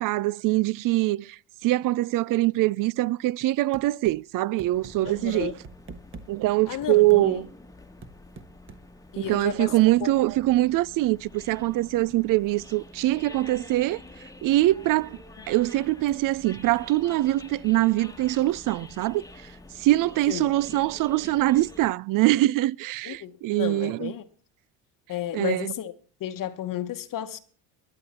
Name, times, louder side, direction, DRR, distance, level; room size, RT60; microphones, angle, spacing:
voice 1, 0.0-5.5 6.3-7.5 9.2-14.0 14.4-15.2 15.5-19.2 19.8-24.1 25.3-25.7, right 17 dB, 55° right, 0.5 m, -23 dB
sound 1, 3.7-4.2 4.6-4.9 5.4-6.3 6.8-7.2 8.0-8.8, right 4 dB, 30° right, 1.4 m, -43 dB
sound 2, 4.7-21.9, left 2 dB, 10° left, 1.3 m, -48 dB
voice 2, 5.0-5.5 6.7-7.4 9.1-9.7 10.0-10.1 20.3-20.5 20.8-20.9 23.0-24.2 25.1-25.9 26.2-27.4, left 11 dB, 50° left, 1.1 m, -32 dB
21.5 x 8.9 x 4.2 m
supercardioid pair, 100°, 40 cm